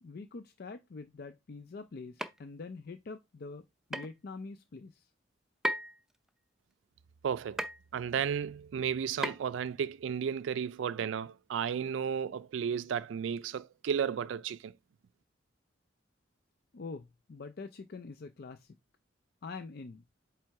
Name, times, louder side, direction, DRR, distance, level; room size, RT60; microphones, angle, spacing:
voice 1, 0.0-3.6 3.9-5.1 16.7-18.7 19.4-20.0, left 4 dB, 55° left, 0.5 m, -45 dB
sound 1, 2.2-2.4 3.9-4.1 5.6-6.0 7.6-7.8 9.2-9.6, equal, 5° right, 0.5 m, -34 dB
voice 2, 7.2-7.6 7.9-14.7, right 7 dB, 75° right, 0.3 m, -33 dB
7.6 x 3.3 x 4.6 m
head